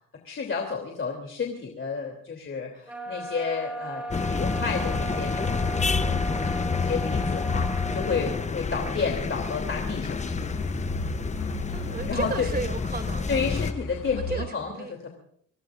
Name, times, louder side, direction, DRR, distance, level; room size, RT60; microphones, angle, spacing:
voice 1, 0.2-6.1 6.4-10.4 12.1-12.5 13.3-15.1, left 5 dB, 40° left, 2 dB, 3.1 m, -31 dB
sound 1, 2.9-8.4, right 2 dB, 5° right, 4.0 m, -36 dB
sound 2, 4.1-13.7, left 4 dB, 25° left, 0.8 m, -28 dB
Truck, 7.9-14.4, left 2 dB, 80° left, 4.3 m, -38 dB
voice 2, 11.7-13.5 14.3-14.9, right 3 dB, 30° right, 7 dB, 2.8 m, -34 dB
25.5 x 17.5 x 2.6 m, 0.65 s
cardioid pair, 90°, 30 cm